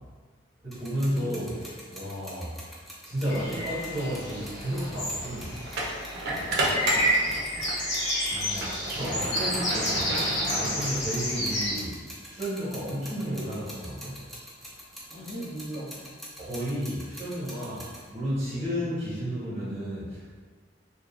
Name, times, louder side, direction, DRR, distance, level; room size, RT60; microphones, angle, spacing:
voice 1, 0.6-2.5 3.0-5.6 8.2-10.1 10.5-12.0 12.3-14.2 16.4-20.4, equal, 30° right, -11 dB, 1.5 m, -32 dB
sound 1, 0.7-18.1, equal, ahead, 0.4 m, -45 dB
sound 2, 3.3-11.7, equal, 60° left, 0.8 m, -30 dB
sound 3, 5.7-7.8 8.3-11.5, right 1 dB, 55° right, 0.6 m, -31 dB
voice 2, 7.1-7.5 15.1-16.0, right 1 dB, 40° left, -12 dB, 1.3 m, -40 dB
3.1 x 2.9 x 2.4 m, 1.5 s
head